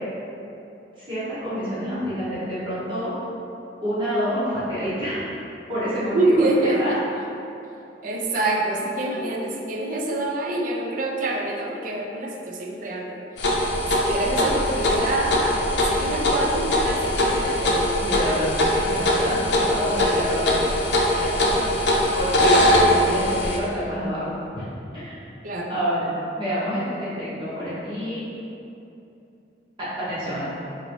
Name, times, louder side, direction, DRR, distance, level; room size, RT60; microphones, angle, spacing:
voice 1, 1.0-3.1 3.8-5.2 5.7-6.9 9.1-9.3 13.8-13.9 18.0-20.5 21.1-21.7 22.0-24.6 24.9-25.1 25.7-28.2 29.8-30.5, equal, 30° right, -11 dB, 1.2 m, -28 dB
voice 2, 6.1-6.8 8.0-13.2 14.0-17.9 25.4-25.7, right 2 dB, 50° right, 0 dB, 0.4 m, -26 dB
sound 1, 13.4-23.6, left 1 dB, 85° left, 0.5 m, -21 dB
4.1 x 2.6 x 3.1 m, 2.8 s
head